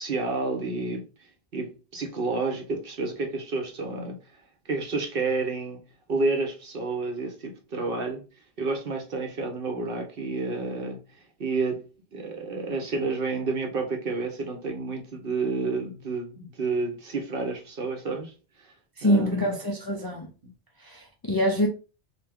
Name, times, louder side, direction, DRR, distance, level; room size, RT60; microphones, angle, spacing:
voice 1, 0.0-4.2 4.6-5.8 6.1-8.2 8.6-11.8 12.1-18.3 18.6-18.7 19.0-19.6, right 3 dB, 55° right, 1.0 m, -30 dB
voice 2, 19.0-20.3 20.8-21.7, equal, 25° left, 0.5 m, -25 dB
3.3 x 2.8 x 3.4 m
omnidirectional pair, 1.2 m